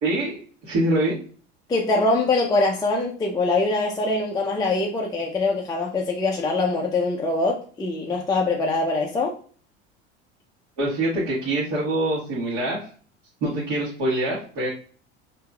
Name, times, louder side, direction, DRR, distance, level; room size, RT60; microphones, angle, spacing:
voice 1, 0.0-1.2 10.8-12.9 13.4-14.7, right 1 dB, 55° right, -7 dB, 1.5 m, -25 dB
voice 2, 1.7-9.3, left 3 dB, 10° left, -1 dB, 0.5 m, -23 dB
4.4 x 2.9 x 2.3 m, 0.42 s
figure-of-eight pair, 75°, 34 cm